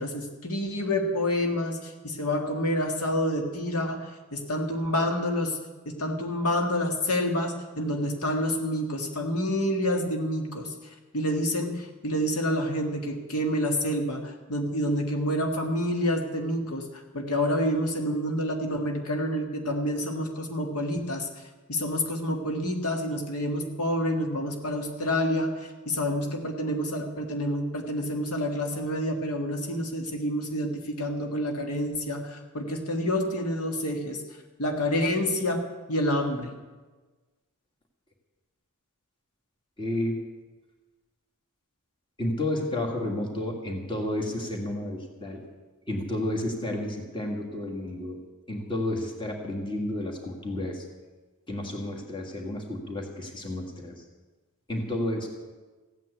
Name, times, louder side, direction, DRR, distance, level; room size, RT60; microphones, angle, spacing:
voice 1, 0.0-5.6 5.9-10.7 11.1-21.3 21.7-34.2 34.6-36.5, left 1 dB, 85° left, 3 dB, 1.9 m, -28 dB
voice 2, 39.8-40.2 42.2-45.4 45.9-48.2 48.5-50.8 51.5-54.0 54.7-55.3, left 1 dB, 20° left, 1 dB, 1.9 m, -31 dB
15.5 x 9.2 x 8.2 m, 1.3 s
head